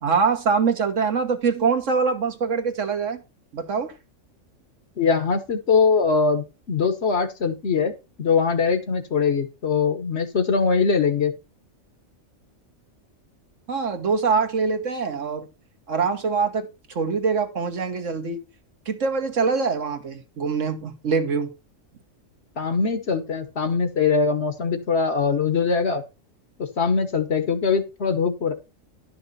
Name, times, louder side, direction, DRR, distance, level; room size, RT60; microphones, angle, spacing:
voice 1, 0.0-3.2 3.5-3.9 13.7-15.5 15.9-16.7 16.9-18.4 18.9-21.5, right 5 dB, 65° right, 1.6 m, -24 dB
voice 2, 5.0-7.9 8.2-11.3 22.6-26.0 26.6-28.5, left 5 dB, 55° left, 1.3 m, -22 dB
11.5 x 5.9 x 4.1 m
omnidirectional pair, 1.4 m